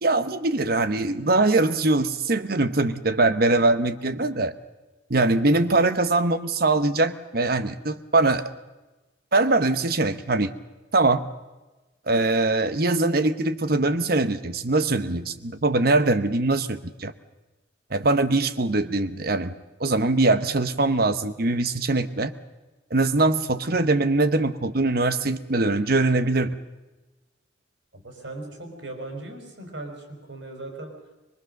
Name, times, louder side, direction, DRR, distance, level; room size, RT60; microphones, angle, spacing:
voice 1, 0.0-4.5 5.1-8.5 9.3-10.5 10.9-11.3 12.1-17.1 17.9-19.5 19.8-22.3 22.9-26.5, right 2 dB, 55° right, 12 dB, 1.0 m, -22 dB
voice 2, 27.9-31.0, right 2 dB, 75° right, 4 dB, 4.5 m, -38 dB
23.0 x 23.0 x 6.6 m, 1.1 s
head